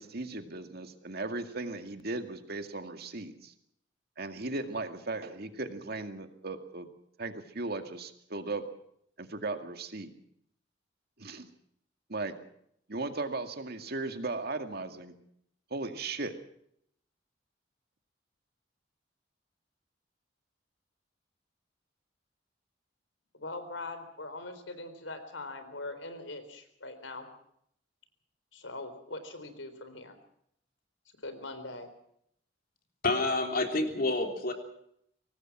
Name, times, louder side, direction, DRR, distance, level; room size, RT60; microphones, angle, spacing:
voice 1, 0.0-3.5 4.2-6.9 7.2-8.6 9.2-10.1 11.2-11.5 12.1-12.4 12.9-15.1 15.7-16.4, right 3 dB, 55° right, 7 dB, 2.2 m, -37 dB
voice 2, 23.3-27.3 28.5-30.2 31.2-31.9, left 2 dB, 90° left, 9 dB, 4.1 m, -42 dB
voice 3, 33.0-34.5, left 2 dB, 55° left, 4 dB, 3.5 m, -28 dB
24.5 x 18.5 x 6.1 m, 0.71 s
head